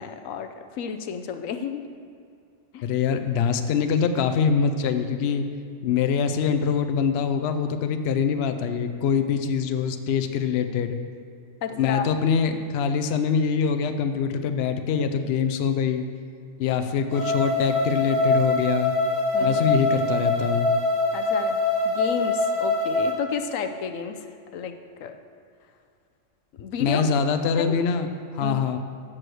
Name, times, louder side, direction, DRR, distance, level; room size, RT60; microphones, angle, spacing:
voice 1, 0.0-1.9 2.7-2.9 11.6-12.1 19.3-19.7 21.1-24.3 24.5-25.2 26.6-27.1 27.6-27.7 28.4-28.6, left 7 dB, 80° left, 7 dB, 1.0 m, -32 dB
voice 2, 2.8-5.5 5.8-11.0 11.8-16.0 16.6-18.9 19.4-20.7 26.8-28.1 28.3-28.8, left 6 dB, 60° left, 8 dB, 0.8 m, -24 dB
sound 1, 17.1-23.1, left 2 dB, 25° right, 2.4 m, -23 dB
7.6 x 6.2 x 7.7 m, 2.3 s
omnidirectional pair, 1.3 m